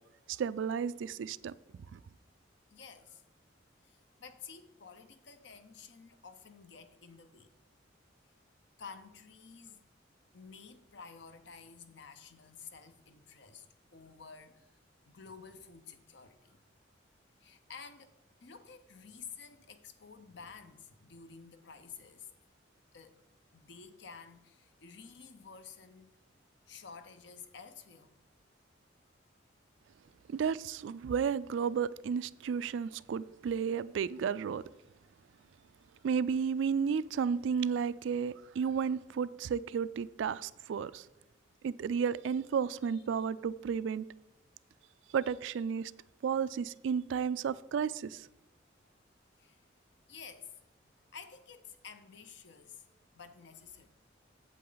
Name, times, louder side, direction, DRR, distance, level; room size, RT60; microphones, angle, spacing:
voice 1, 0.3-1.5 1.9-2.0 30.3-34.6 36.0-41.1 41.6-44.1 45.1-45.9 46.2-48.3, right 6 dB, 75° right, 0.3 m, -32 dB
voice 2, 2.7-3.2 3.8-7.5 8.8-9.8 10.3-13.7 13.9-14.8 15.0-16.6 17.4-22.3 22.9-23.2 23.5-26.1 26.7-28.1 35.4-35.5 42.8-43.3 45.2-45.6 49.0-49.1 49.4-49.6 50.1-50.6 51.1-52.9 53.1-53.9, left 6 dB, 65° left, 0.7 m, -51 dB
8.5 x 7.6 x 3.9 m
head